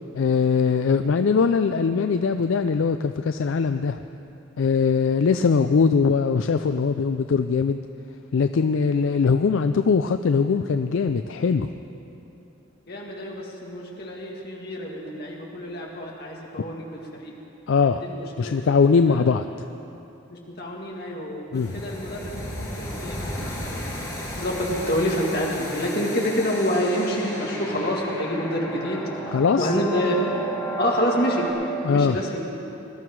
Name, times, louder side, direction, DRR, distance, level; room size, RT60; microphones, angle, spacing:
voice 1, 0.1-4.0 4.6-7.8 8.3-11.7 17.7-18.0 18.4-19.5 21.5-21.7 29.3-29.8 31.8-32.2, left 5 dB, 70° left, 9 dB, 0.4 m, -21 dB
voice 2, 12.9-17.3 18.1-18.5 19.0-19.2 20.3-24.0 24.3-29.0 29.6-30.1 30.8-32.4, equal, 50° left, -2 dB, 2.2 m, -27 dB
sound 1, 21.5-31.5, equal, 15° left, 3.8 m, -33 dB
21.0 x 12.5 x 4.7 m, 3.0 s
head